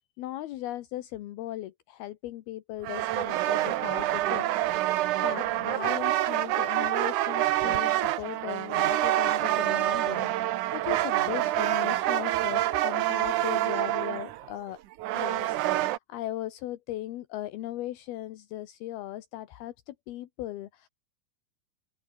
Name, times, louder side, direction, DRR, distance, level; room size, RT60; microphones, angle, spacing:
voice 1, 0.2-4.5 5.2-14.8 15.1-20.9, left 14 dB, 75° left, 3.0 m, -38 dB
sound 1, 2.8-16.0, right 14 dB, 70° right, 2.0 m, -27 dB
open air
omnidirectional pair, 4.6 m